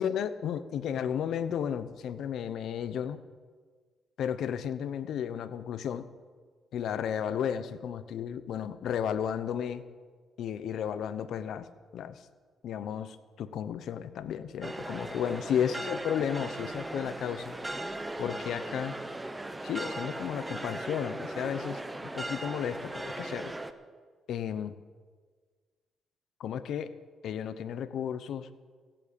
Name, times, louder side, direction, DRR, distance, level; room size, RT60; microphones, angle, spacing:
voice 1, 0.0-3.2 4.2-6.1 6.7-9.8 10.4-12.2 12.6-17.6 18.2-19.0 19.6-21.8 22.1-23.6 24.3-24.8 26.4-26.9 27.2-28.5, left 8 dB, 70° left, 13 dB, 0.8 m, -33 dB
sound 1, 14.6-23.7, right 2 dB, 15° right, 0.9 m, -38 dB
16.0 x 8.8 x 8.6 m, 1.5 s
cardioid pair, 90°, 0 cm